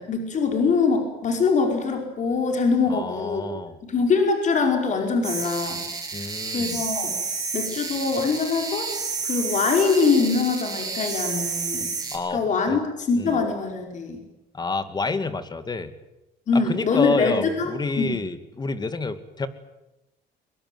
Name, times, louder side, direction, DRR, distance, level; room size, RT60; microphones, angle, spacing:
voice 1, 0.0-3.4 3.8-7.2 7.5-8.9 9.2-11.9 12.3-14.2 16.5-17.7 18.0-18.2, left 4 dB, 45° left, 3 dB, 5.1 m, -23 dB
voice 2, 2.9-3.8 6.1-6.9 12.1-12.8 13.1-13.4 14.5-15.9 16.5-19.5, left 3 dB, 25° left, 11 dB, 2.2 m, -29 dB
sound 1, 5.2-12.2, right 4 dB, 20° right, 6.7 m, -30 dB
22.5 x 22.5 x 9.5 m, 0.97 s
cardioid pair, 110°, 17 cm